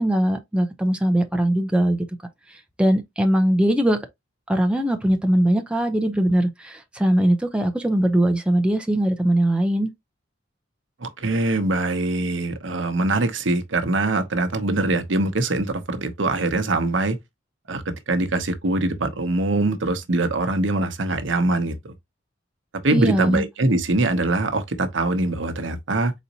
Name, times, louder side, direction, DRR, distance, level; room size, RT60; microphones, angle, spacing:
voice 1, 0.0-2.0 2.5-4.0 4.5-9.9 22.9-23.4, right 1 dB, 5° right, 0.6 m, -21 dB
voice 2, 11.0-17.2 17.7-21.9 22.8-26.1, right 2 dB, 70° right, 0.9 m, -23 dB
4.1 x 4.0 x 2.8 m
head